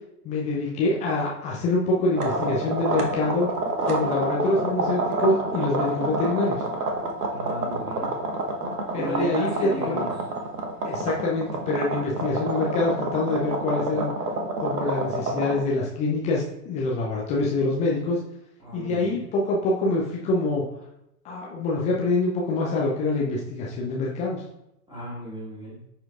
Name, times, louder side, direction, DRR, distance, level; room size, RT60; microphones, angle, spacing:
voice 1, 0.2-3.5 3.9-6.6 8.9-10.0 10.8-14.1 14.6-18.2 18.7-20.6 21.2-24.4, left 2 dB, 15° left, -3 dB, 0.5 m, -25 dB
sound 1, 2.1-15.6, right 2 dB, 70° right, 1.1 m, -28 dB
voice 2, 7.3-8.2 9.0-10.1 18.6-19.2 24.9-25.8, equal, 10° right, -7 dB, 2.4 m, -34 dB
10.0 x 4.4 x 2.4 m, 0.84 s
figure-of-eight pair, 100°, 48 cm